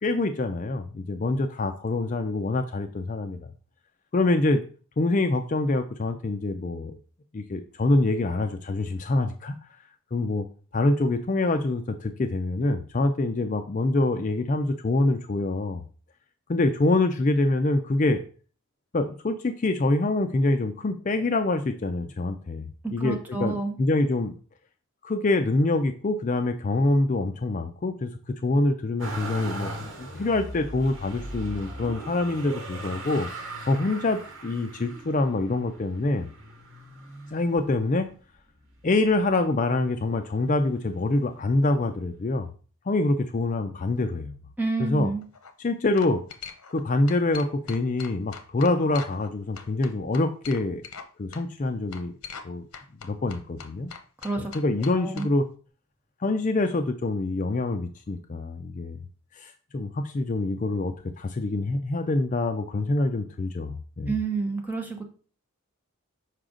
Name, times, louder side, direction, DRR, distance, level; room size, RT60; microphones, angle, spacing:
voice 1, 0.0-3.5 4.1-4.6 5.0-7.0 7.3-9.5 10.1-10.5 10.7-15.8 16.5-18.2 18.9-24.3 25.0-33.3 33.6-36.3 37.3-38.1 38.8-42.5 42.9-44.3 44.8-45.1 45.6-46.2 46.7-50.8 51.2-52.1 52.4-52.6 53.0-53.9 54.4-55.4 56.2-59.0 59.4-64.1, left 2 dB, 35° left, 7 dB, 0.4 m, -25 dB
voice 2, 23.0-23.8 44.6-45.2 54.2-54.5 55.0-55.3 64.1-65.0, right 3 dB, 10° right, 2 dB, 0.9 m, -29 dB
Motor vehicle (road), 29.0-38.1 38.7-39.5 39.8-40.9 41.9-42.0, right 1 dB, 60° right, 1.4 m, -39 dB
sound 1, 45.2-45.5 46.0-46.8 47.1-49.3 49.6-51.1 51.3-51.4 51.9-52.5 52.7-55.3, left 6 dB, 85° left, 0.8 m, -41 dB
6.4 x 5.0 x 3.7 m, 0.39 s
head